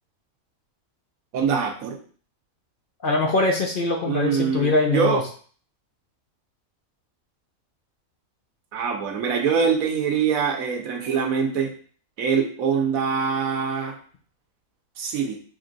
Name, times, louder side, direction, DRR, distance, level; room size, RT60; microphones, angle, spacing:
voice 1, 1.3-2.0 4.1-5.2 8.7-11.7 12.2-14.0 15.0-15.4, right 6 dB, 85° right, 3 dB, 1.3 m, -24 dB
voice 2, 3.0-5.2, left 2 dB, 50° left, 2 dB, 0.7 m, -22 dB
6.2 x 3.1 x 2.5 m, 0.43 s
omnidirectional pair, 1.4 m